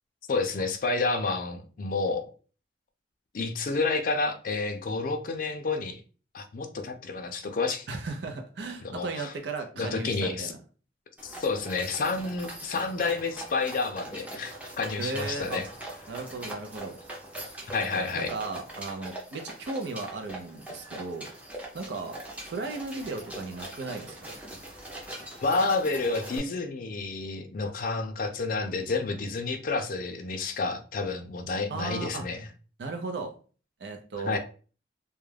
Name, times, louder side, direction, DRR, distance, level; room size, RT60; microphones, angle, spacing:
voice 1, 0.3-2.3 3.3-6.0 6.3-7.9 8.8-9.3 9.8-10.5 11.2-15.6 17.7-18.3 25.4-32.5 34.2-34.4, left 3 dB, 50° left, 0.4 m, -30 dB
voice 2, 7.9-10.6 15.0-15.6 16.1-17.0 18.0-21.3 21.7-22.2 22.5-24.3 31.7-32.3 32.8-33.3 33.8-34.4, right 3 dB, 75° right, 0.5 m, -36 dB
sound 1, 11.2-26.4, right 1 dB, 10° right, 0.5 m, -42 dB
2.3 x 2.1 x 3.2 m
head